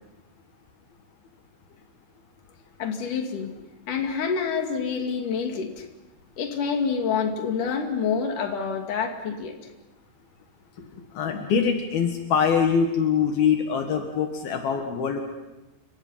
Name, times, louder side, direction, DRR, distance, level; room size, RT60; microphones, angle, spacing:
voice 1, 2.8-3.5 3.9-5.9 6.4-9.6 10.9-11.0, left 6 dB, 60° left, 4 dB, 3.9 m, -27 dB
voice 2, 11.1-15.2, left 6 dB, 75° left, 4 dB, 3.6 m, -23 dB
30.0 x 27.0 x 5.8 m, 1.0 s
omnidirectional pair, 4.4 m